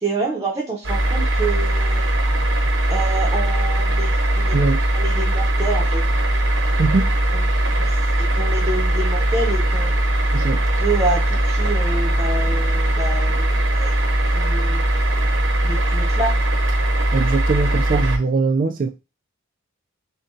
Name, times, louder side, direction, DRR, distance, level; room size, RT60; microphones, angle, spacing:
voice 1, 0.0-2.2 2.9-4.5 4.9-6.0 7.3-7.4 7.8-10.0 10.8-14.8 15.6-16.3, right 2 dB, 15° right, -4 dB, 0.7 m, -28 dB
sound 1, 0.8-18.2, right 1 dB, 65° right, 0.8 m, -20 dB
voice 2, 4.5-4.8 6.8-7.1 10.3-10.6 17.1-18.9, right 3 dB, 40° right, 5 dB, 0.3 m, -21 dB
6.4 x 2.2 x 2.6 m, 0.27 s
head